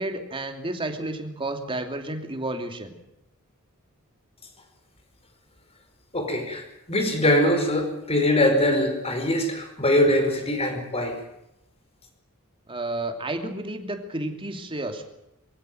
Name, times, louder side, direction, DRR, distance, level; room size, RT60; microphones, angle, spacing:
voice 1, 0.0-2.9 12.7-15.1, right 2 dB, 25° right, 5 dB, 2.8 m, -31 dB
voice 2, 6.1-11.2, left 1 dB, 30° left, 6 dB, 5.1 m, -22 dB
23.0 x 16.0 x 9.3 m, 0.87 s
head